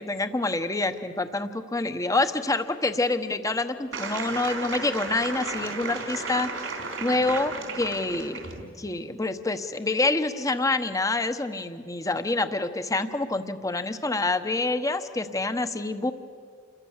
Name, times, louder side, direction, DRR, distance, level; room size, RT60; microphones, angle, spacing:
voice 1, 0.0-6.5 7.0-8.4 8.8-16.1, left 2 dB, 15° left, 9 dB, 1.0 m, -27 dB
sound 1, 3.9-8.6, right 4 dB, 85° right, 4.0 m, -34 dB
29.0 x 22.5 x 7.3 m, 2.2 s
head